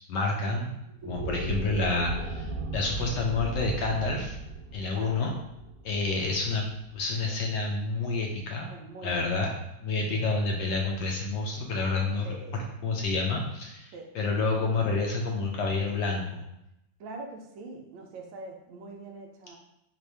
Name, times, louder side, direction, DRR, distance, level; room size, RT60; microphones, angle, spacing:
voice 1, 0.1-0.8 1.0-4.4 4.7-5.4 5.8-6.7 6.9-8.7 9.0-9.5 9.8-16.4, left 3 dB, 70° left, 0 dB, 1.1 m, -29 dB
sound 1, 0.9-7.3, right 2 dB, 60° right, 0.9 m, -37 dB
voice 2, 4.7-5.2 7.2-7.4 8.7-9.4 12.2-12.6 13.9-14.1 17.0-19.6, right 3 dB, 75° right, 2 dB, 1.3 m, -43 dB
4.3 x 2.5 x 3.2 m, 0.83 s
omnidirectional pair, 2.2 m